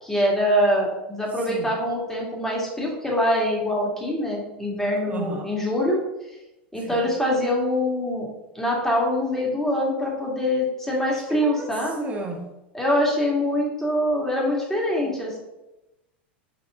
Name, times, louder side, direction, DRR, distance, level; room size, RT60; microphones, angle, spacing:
voice 1, 0.0-6.0 6.3-6.4 6.7-8.3 8.5-12.0 12.7-15.4, left 1 dB, 5° left, -3 dB, 2.1 m, -24 dB
voice 2, 5.1-5.5 6.8-7.1 11.3-11.7 12.0-12.5 15.0-15.1, right 3 dB, 25° right, 2 dB, 1.4 m, -33 dB
5.6 x 4.5 x 3.8 m, 0.96 s
hypercardioid pair, 95°, 6 cm